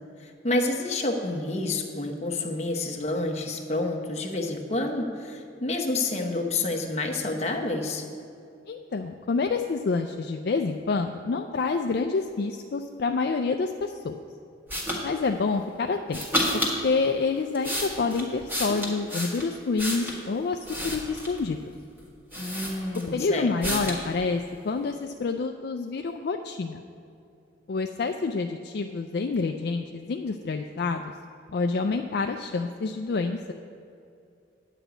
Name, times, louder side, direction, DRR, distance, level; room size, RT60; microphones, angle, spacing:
voice 1, 0.2-8.0 22.4-23.8, left 2 dB, 35° left, 2 dB, 1.0 m, -29 dB
voice 2, 8.7-14.2 15.0-16.2 16.5-21.7 23.1-26.8 27.7-31.1 31.5-33.5, left 4 dB, 60° left, 5 dB, 0.4 m, -28 dB
sound 1, 14.7-15.0 16.1-16.8 17.4-20.2 20.6-21.4 22.0-22.1 22.3-23.2 23.6-24.0, equal, 10° right, 1.5 m, -30 dB
10.0 x 5.0 x 8.0 m, 2.5 s
head